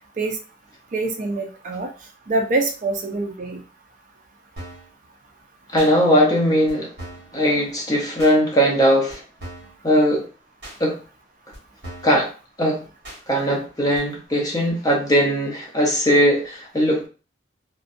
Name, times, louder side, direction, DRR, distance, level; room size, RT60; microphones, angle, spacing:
voice 1, 0.9-1.9 2.3-3.6, right 2 dB, 45° right, 0.4 m, -24 dB
sound 1, 4.6-4.9 5.8-5.9 6.7-6.8 7.0-7.3 8.2-8.4 9.1-9.2 9.4-9.8 10.6-10.8 11.5-11.6 11.8-12.2 13.0-13.2 13.9-14.0, right 1 dB, 65° right, 1.2 m, -38 dB
voice 2, 5.7-6.9 7.3-9.2 9.8-10.3 10.8-11.0 12.0-12.3 12.6-12.8 13.3-17.1, equal, 20° left, 0.6 m, -19 dB
2.5 x 2.1 x 2.5 m
head